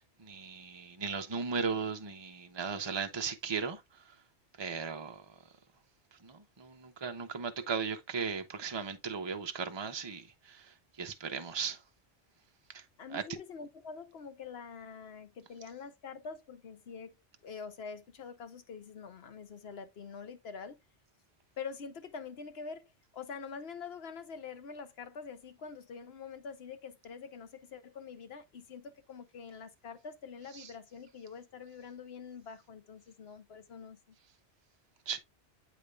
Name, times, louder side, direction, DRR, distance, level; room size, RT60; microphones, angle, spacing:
voice 1, 0.2-3.8 4.6-5.2 6.2-10.6 11.0-11.8 12.7-12.8 13.1-13.2 35.1-35.2, right 5 dB, 25° right, 0.8 m, -36 dB
voice 2, 13.0-17.1 17.4-20.8 21.6-34.0, left 5 dB, 65° left, 1.2 m, -45 dB
8.3 x 5.1 x 2.4 m
omnidirectional pair, 1.2 m